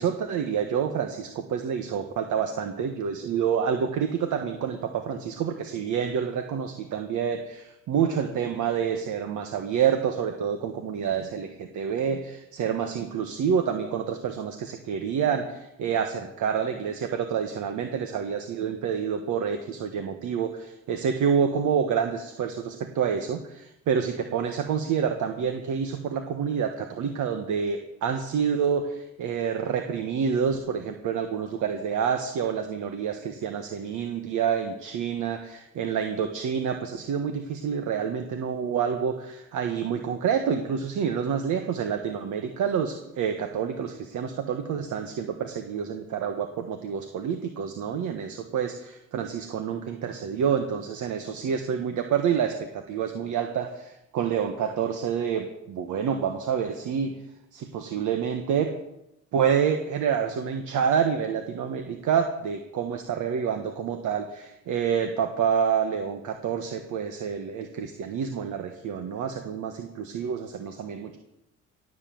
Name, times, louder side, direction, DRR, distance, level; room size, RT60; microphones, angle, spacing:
voice 1, 0.0-57.1 57.5-58.7 59.3-71.2, right 7 dB, 80° right, 6 dB, 1.4 m, -28 dB
18.0 x 7.6 x 7.7 m, 0.88 s
cardioid pair, 90°, 30 cm